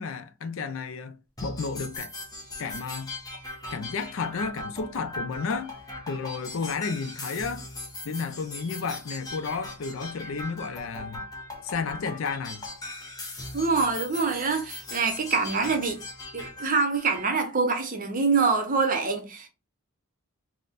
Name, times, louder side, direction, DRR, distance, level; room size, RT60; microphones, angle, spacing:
voice 1, 0.0-2.1 2.6-3.1 3.7-5.7 6.1-7.7 8.0-11.3 11.6-12.7, left 5 dB, 65° left, 0.4 m, -32 dB
sound 1, 1.4-17.4, left 2 dB, 20° left, 0.8 m, -39 dB
voice 2, 13.5-16.0 16.3-19.5, right 4 dB, 40° right, 0.7 m, -25 dB
4.1 x 2.1 x 2.4 m
head